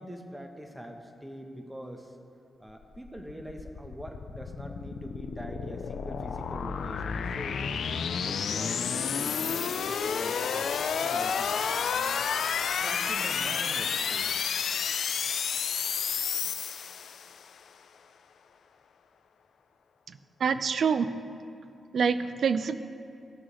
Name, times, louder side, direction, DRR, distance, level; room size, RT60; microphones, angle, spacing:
voice 1, 0.0-2.2 2.6-7.6 8.2-11.7 11.9-12.3 12.8-14.4, equal, 10° right, 3 dB, 0.9 m, -44 dB
sound 1, 2.8-17.4, left 6 dB, 75° left, 0.4 m, -31 dB
voice 2, 20.1-21.1 21.9-22.8, right 6 dB, 65° right, 11 dB, 0.4 m, -26 dB
15.5 x 6.2 x 3.1 m, 2.6 s
wide cardioid pair, 125°, 0 cm